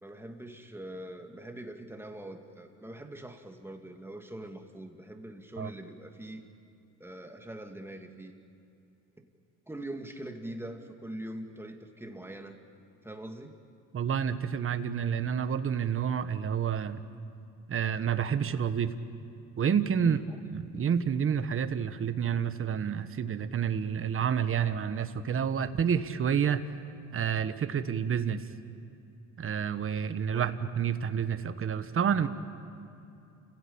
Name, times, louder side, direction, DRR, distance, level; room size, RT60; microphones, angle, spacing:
voice 1, 0.0-6.4 7.0-8.3 9.7-12.6 13.0-13.6 20.0-20.2 30.3-30.5, right 1 dB, 5° right, 4 dB, 2.3 m, -43 dB
voice 2, 13.9-17.0 17.7-18.9 19.6-20.2 20.5-26.6 27.1-28.4 29.4-32.3, right 7 dB, 45° right, 10 dB, 1.3 m, -29 dB
29.5 x 16.5 x 8.8 m, 2.7 s
cardioid pair, 105°, 31 cm